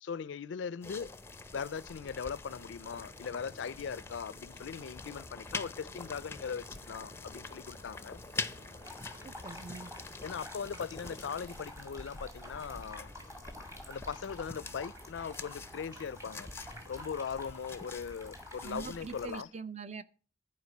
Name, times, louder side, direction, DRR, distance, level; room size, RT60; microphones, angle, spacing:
voice 1, 0.0-1.1 1.5-8.2 10.2-13.1 13.9-16.5 16.9-19.5, left 6 dB, 85° left, 0.4 m, -40 dB
sound 1, 0.8-19.4, left 3 dB, 15° left, 0.5 m, -45 dB
Wind, 2.4-17.1, equal, 85° right, 2.1 m, -58 dB
sound 2, 8.8-19.4, left 1 dB, 15° right, 2.1 m, -50 dB
voice 2, 9.2-9.9 18.6-20.0, right 5 dB, 35° right, 0.6 m, -43 dB
11.0 x 4.9 x 7.7 m
head